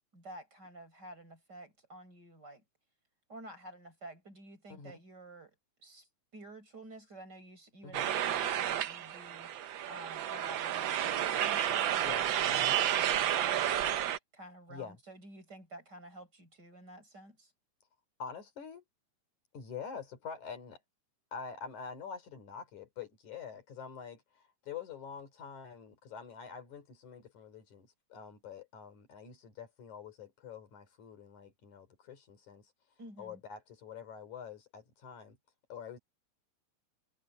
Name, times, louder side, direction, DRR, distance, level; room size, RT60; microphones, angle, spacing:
voice 1, 0.1-2.6 3.3-17.5 33.0-33.4, right 2 dB, 35° right, 7.7 m, -51 dB
sound 1, 7.9-14.2, right 11 dB, 75° right, 1.1 m, -31 dB
voice 2, 12.0-12.8 14.7-15.0 18.2-18.8 19.5-20.8 21.3-32.7 33.2-35.4 35.7-36.0, left 6 dB, 85° left, 4.9 m, -46 dB
omnidirectional pair, 3.3 m